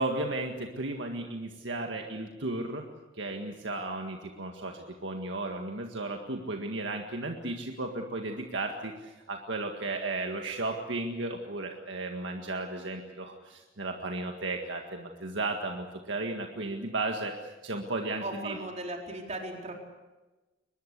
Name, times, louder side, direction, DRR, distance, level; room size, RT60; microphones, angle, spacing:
voice 1, 0.0-2.8 3.2-17.3 17.6-18.6, right 2 dB, 65° right, 3 dB, 1.8 m, -34 dB
voice 2, 18.2-19.7, right 2 dB, 35° right, 1 dB, 4.4 m, -37 dB
23.5 x 20.5 x 8.3 m, 1.1 s
head